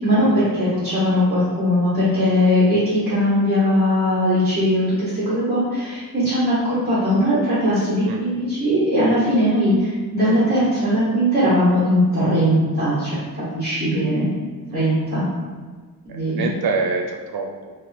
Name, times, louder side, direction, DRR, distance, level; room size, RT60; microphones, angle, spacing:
voice 1, 0.0-13.1 13.5-14.3 14.7-15.3 16.0-16.5, equal, 20° right, -11 dB, 1.5 m, -19 dB
voice 2, 16.1-17.7, right 4 dB, 85° right, 2 dB, 0.5 m, -26 dB
3.6 x 2.5 x 4.1 m, 1.4 s
wide cardioid pair, 170°, 36 cm